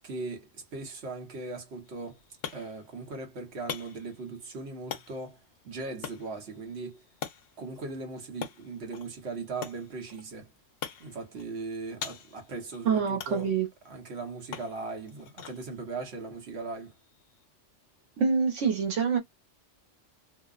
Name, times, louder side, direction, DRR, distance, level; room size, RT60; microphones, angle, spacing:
voice 1, 0.0-2.2 2.5-7.0 7.6-10.5 11.0-13.5 13.8-16.9, right 3 dB, 60° right, 1.2 m, -39 dB
sound 1, 1.8-17.4, left 8 dB, 60° left, 0.7 m, -45 dB
voice 2, 12.8-13.7 18.2-19.2, right 6 dB, 80° right, 1.3 m, -26 dB
2.7 x 2.1 x 2.4 m
omnidirectional pair, 1.2 m